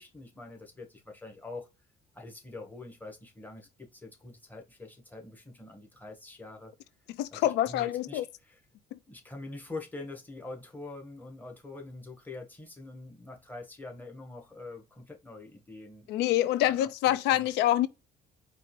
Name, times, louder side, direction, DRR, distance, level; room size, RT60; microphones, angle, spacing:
voice 1, 0.0-1.7 2.1-6.7 7.3-8.6 9.1-16.1 16.6-16.8 17.0-17.5, left 2 dB, 10° left, 1.3 m, -45 dB
voice 2, 7.2-8.2 16.1-17.9, left 13 dB, 85° left, 0.4 m, -26 dB
4.6 x 2.5 x 3.1 m
cardioid pair, 110°, 17 cm